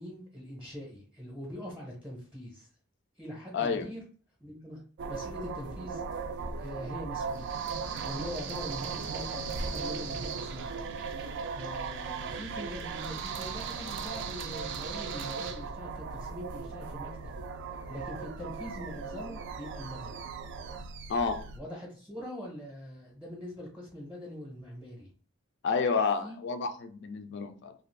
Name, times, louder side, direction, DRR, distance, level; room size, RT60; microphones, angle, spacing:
voice 1, 0.0-2.7 3.2-4.0 4.4-4.8 5.1-6.0 6.6-7.6 8.0-10.8 11.5-17.3 17.9-20.2 21.5-25.1 26.2-26.4, equal, 10° right, -2 dB, 0.7 m, -43 dB
voice 2, 3.5-3.9 21.1-21.5 25.6-27.7, left 5 dB, 55° left, 8 dB, 0.4 m, -30 dB
sound 1, 5.0-21.6, right 5 dB, 55° right, 0.3 m, -37 dB
2.4 x 2.4 x 3.2 m, 0.41 s
head